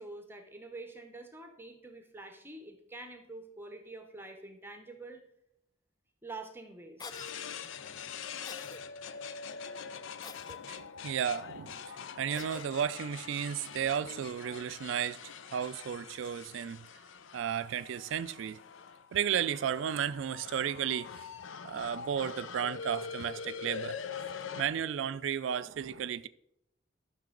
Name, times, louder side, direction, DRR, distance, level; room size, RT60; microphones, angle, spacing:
voice 1, 0.0-5.2 6.2-7.6 24.3-24.4, right 2 dB, 10° right, 0.8 m, -47 dB
Cough, 7.0-7.3 8.4-8.8 10.2-10.6 12.3-12.7, left 4 dB, 20° left, 0.4 m, -46 dB
sound 1, 7.1-24.6, left 6 dB, 75° left, 0.5 m, -44 dB
voice 2, 10.7-11.8 12.2-16.9 17.3-18.6 19.1-21.1 21.6-24.0 24.6-26.3, right 8 dB, 70° right, 0.3 m, -33 dB
12.0 x 6.0 x 3.8 m
head